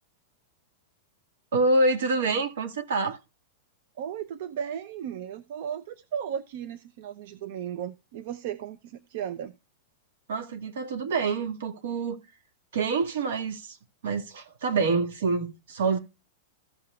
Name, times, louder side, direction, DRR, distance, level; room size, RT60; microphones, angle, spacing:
voice 1, 1.5-3.2 10.3-12.2 12.7-13.8 14.0-16.0, right 3 dB, 85° right, 2.2 m, -26 dB
voice 2, 4.0-9.5 15.9-16.0, right 9 dB, 60° right, 0.8 m, -35 dB
15.5 x 5.8 x 2.4 m
supercardioid pair, 150°, 0 cm